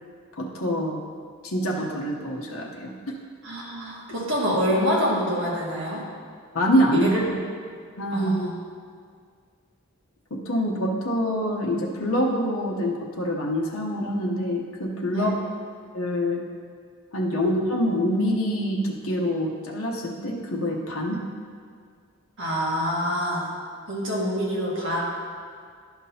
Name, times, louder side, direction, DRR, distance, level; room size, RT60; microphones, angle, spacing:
voice 1, 0.4-1.0 1.4-2.9 6.5-7.1 8.0-8.5 10.3-15.4 15.9-16.4 17.1-21.2, equal, 70° left, -2 dB, 0.9 m, -25 dB
voice 2, 3.4-6.0 6.9-7.2 8.1-8.5 15.1-15.4 17.4-17.5 21.1-21.2 22.4-23.5 23.9-25.0, equal, 55° right, -5 dB, 1.8 m, -26 dB
11.0 x 5.9 x 2.8 m, 2.1 s
head